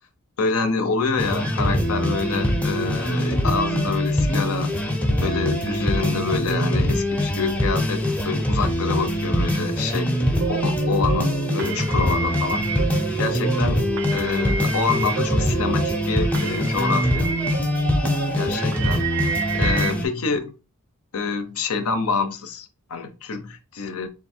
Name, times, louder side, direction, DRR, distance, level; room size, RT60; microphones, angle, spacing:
voice 1, 0.4-4.8 5.2-10.2 10.5-12.8 13.2-17.3 18.3-20.5 21.1-24.1, left 4 dB, 70° left, 0.7 m, -27 dB
sound 1, 1.2-20.1, equal, 5° left, 0.6 m, -23 dB
sound 2, 10.4-19.9, right 6 dB, 65° right, 0.6 m, -30 dB
3.5 x 2.6 x 4.2 m
head